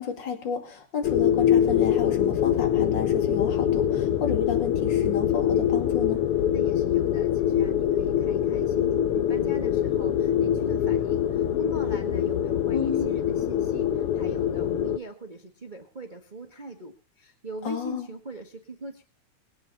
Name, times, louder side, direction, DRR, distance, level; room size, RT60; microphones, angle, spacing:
voice 1, 0.0-6.2 12.7-13.1 17.6-18.1, left 6 dB, 40° left, 5 dB, 2.8 m, -31 dB
sound 1, 1.0-15.0, left 10 dB, 70° left, 1.4 m, -24 dB
sound 2, 5.0-11.8, right 3 dB, 20° left, 2.8 m, -48 dB
voice 2, 6.5-19.0, right 2 dB, 30° right, 5 dB, 0.9 m, -41 dB
23.5 x 9.0 x 4.0 m, 0.34 s
omnidirectional pair, 3.4 m